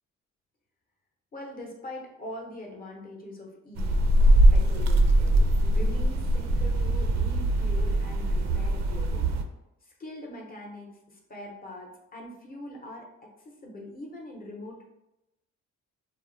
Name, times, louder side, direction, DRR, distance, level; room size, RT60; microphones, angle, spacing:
voice 1, 1.3-9.4 9.8-14.8, left 1 dB, 30° left, -1 dB, 0.8 m, -43 dB
sound 1, 3.8-9.4, right 1 dB, 65° right, 0.4 m, -22 dB
2.3 x 2.0 x 3.8 m, 0.91 s
cardioid pair, 90°, 30 cm